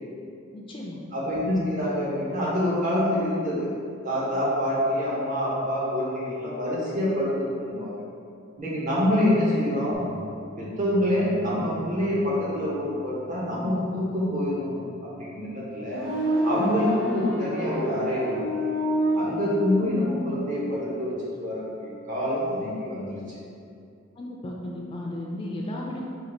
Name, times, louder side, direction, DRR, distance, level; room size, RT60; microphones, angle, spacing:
voice 1, 0.5-1.0 24.2-26.0, left 1 dB, 25° left, -2 dB, 0.3 m, -34 dB
voice 2, 1.1-3.7 4.0-8.0 8.6-10.0 10.6-16.0 16.4-18.7 19.1-23.2, left 1 dB, 40° right, -7 dB, 1.0 m, -26 dB
sound 1, 9.9-16.2, left 1 dB, 15° right, 0.6 m, -49 dB
sound 2, 15.8-20.2, equal, 70° right, 1.2 m, -28 dB
3.9 x 2.4 x 4.4 m, 2.5 s
head